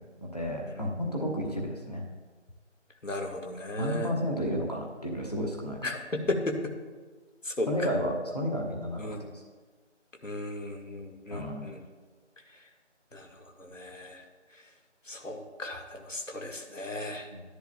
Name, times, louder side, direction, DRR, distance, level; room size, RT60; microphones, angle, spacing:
voice 1, 0.2-2.0 3.8-5.8 7.7-9.1 9.3-9.4 11.3-11.6 17.3-17.4, equal, 35° left, -1 dB, 1.1 m, -32 dB
voice 2, 0.7-1.2 3.0-4.1 5.8-6.7 7.4-7.7 9.0-9.4 10.2-11.8 13.1-13.3 13.6-14.2 15.1-17.3, left 1 dB, 85° left, 3 dB, 1.6 m, -35 dB
13.5 x 10.5 x 2.2 m, 1.4 s
figure-of-eight pair, 170°, 37 cm